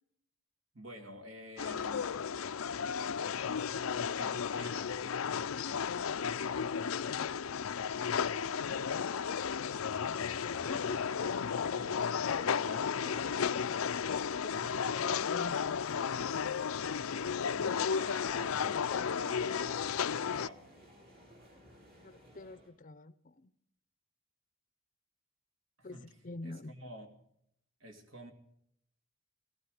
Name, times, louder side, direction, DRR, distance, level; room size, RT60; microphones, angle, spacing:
voice 1, 0.7-2.2 4.1-5.0 11.8-12.3 12.6-13.2 14.6-15.0 17.5-20.8 25.8-26.1 26.4-27.1 27.8-28.3, equal, 70° right, 5 dB, 2.7 m, -50 dB
sound 1, 1.6-20.5, left 7 dB, 85° left, 0.5 m, -33 dB
voice 2, 6.4-7.4 10.0-11.3 11.6-11.7 12.4-13.3 14.3-16.5 22.0-23.5 25.8-26.7, left 2 dB, 40° left, 15 dB, 0.7 m, -48 dB
sound 2, 9.7-12.6, equal, 20° right, 2.0 m, -60 dB
sound 3, 15.8-22.7, equal, 50° right, 5.6 m, -58 dB
17.5 x 16.0 x 4.9 m, 0.74 s
head